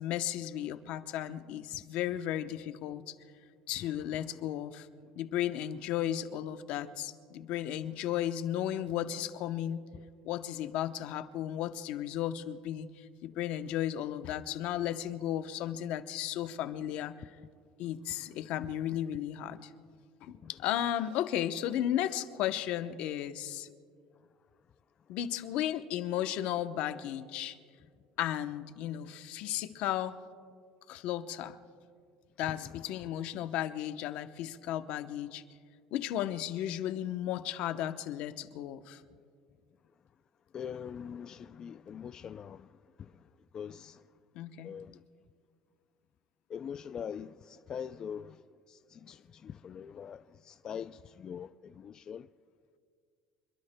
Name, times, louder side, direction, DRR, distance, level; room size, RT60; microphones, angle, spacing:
voice 1, 0.0-3.1 3.7-4.9 5.2-9.8 10.2-17.1 17.8-19.7 20.2-23.7 25.1-27.6 28.2-30.2 30.9-31.6 32.4-35.4 35.9-39.0 44.3-44.8, left 11 dB, 65° left, 0.8 m, -34 dB
voice 2, 40.5-42.7 43.0-43.2 43.5-44.0 44.6-45.0 46.5-48.4 48.7-52.3, left 8 dB, 30° left, 0.3 m, -43 dB
26.5 x 22.0 x 2.2 m
cardioid pair, 145°, 2 cm